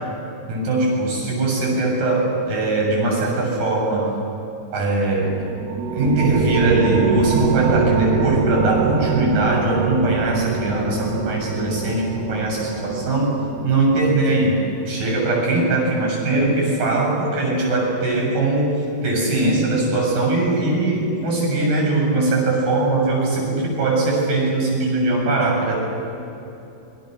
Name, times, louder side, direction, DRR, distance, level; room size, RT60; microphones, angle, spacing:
voice 1, 0.5-4.1 4.7-5.4 5.9-25.8, right 2 dB, 60° right, -1 dB, 9.1 m, -20 dB
sound 1, 5.2-15.0, right 6 dB, 80° right, 3.1 m, -25 dB
28.0 x 23.0 x 6.7 m, 2.9 s
omnidirectional pair, 4.3 m